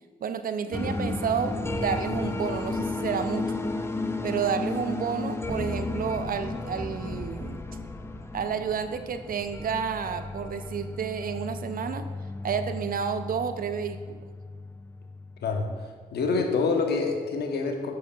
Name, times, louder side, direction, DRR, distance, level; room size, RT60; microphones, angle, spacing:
voice 1, 0.2-3.6 4.2-7.6 8.3-12.1 12.4-14.3, right 7 dB, 55° right, 9 dB, 0.5 m, -30 dB
sound 1, 0.7-15.8, left 2 dB, 15° left, 0.6 m, -34 dB
voice 2, 16.1-17.9, left 4 dB, 70° left, 3 dB, 1.0 m, -26 dB
8.2 x 6.9 x 2.3 m, 1.5 s
supercardioid pair, 50°, 18 cm